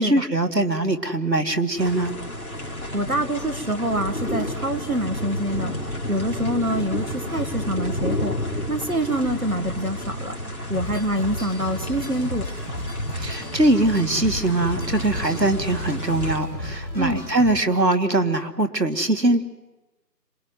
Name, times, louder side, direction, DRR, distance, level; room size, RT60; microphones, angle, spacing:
voice 1, 0.0-2.1 13.1-19.4, right 2 dB, 75° right, 7 dB, 2.4 m, -22 dB
sound 1, 1.8-16.4, left 1 dB, 60° left, 3.7 m, -31 dB
voice 2, 2.6-5.7 6.1-10.3 10.7-12.5 17.0-17.2, right 1 dB, 55° right, 8 dB, 1.8 m, -26 dB
sound 2, 10.7-17.9, left 1 dB, 15° right, 3.6 m, -33 dB
26.5 x 23.5 x 9.4 m, 1.1 s
figure-of-eight pair, 175°, 50 cm